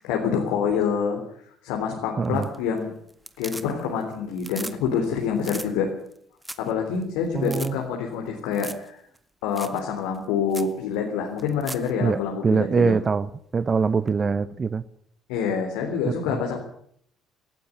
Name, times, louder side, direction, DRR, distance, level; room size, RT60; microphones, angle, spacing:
voice 1, 0.0-1.2 1.6-2.9 3.4-5.9 6.6-9.0 9.4-13.0 15.3-16.6, left 6 dB, 75° left, 1 dB, 3.6 m, -26 dB
sound 1, 2.2-2.8 3.1-4.0 4.3-4.8 5.0-5.1 5.4-5.7 6.1-6.2 6.4-6.7 7.0-7.1 7.4-7.7 8.5-8.9 9.1-9.2 9.6-9.8 10.1-10.2 10.5-10.7 11.4-11.9 14.1-14.2, right 1 dB, 10° right, 1.8 m, -38 dB
voice 2, 2.2-2.5 7.3-7.8 12.0-14.8 16.3-16.4, right 5 dB, 35° right, 17 dB, 0.9 m, -23 dB
17.5 x 15.0 x 9.9 m, 0.67 s
hypercardioid pair, 55°, 0 cm